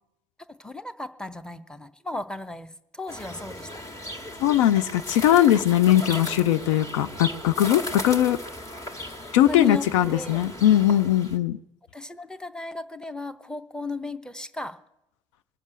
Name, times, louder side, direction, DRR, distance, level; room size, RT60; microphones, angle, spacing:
voice 1, 0.6-3.7 9.5-10.4 11.9-14.8, left 3 dB, 5° left, 12 dB, 0.9 m, -34 dB
sound 1, 3.1-11.4, left 1 dB, 20° left, 1.8 m, -37 dB
voice 2, 4.4-8.4 9.3-11.6, left 12 dB, 75° left, 13 dB, 0.5 m, -20 dB
21.0 x 7.2 x 8.0 m, 0.86 s
figure-of-eight pair, 55°, 16 cm